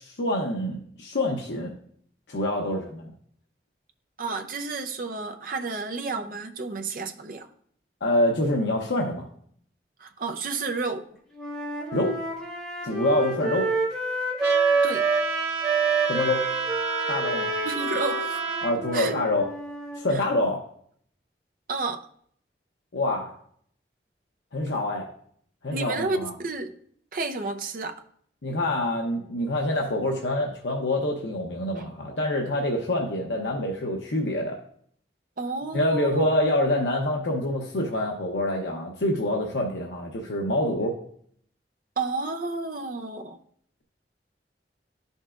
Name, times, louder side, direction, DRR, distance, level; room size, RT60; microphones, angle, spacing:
voice 1, 0.0-1.7 2.3-3.1 8.0-9.2 11.9-12.1 12.8-13.7 16.1-16.4 17.1-17.5 18.6-19.4 20.0-20.6 22.9-23.3 24.5-25.1 25.6-26.3 28.4-34.5 35.7-41.0, left 1 dB, 85° left, 0 dB, 0.8 m, -26 dB
voice 2, 4.2-7.5 10.0-11.1 14.8-15.1 17.6-18.4 18.9-19.1 20.1-20.2 21.7-22.0 25.7-26.7 27.1-28.0 35.4-36.3 42.0-43.4, right 3 dB, 50° right, 5 dB, 0.6 m, -31 dB
Wind instrument woodwind instrument, 11.3-15.2 15.6-20.0, right 4 dB, ahead, 2.2 m, -28 dB
Trumpet, 14.4-18.7, right 5 dB, 75° right, 0.9 m, -30 dB
12.0 x 5.4 x 2.4 m, 0.64 s
head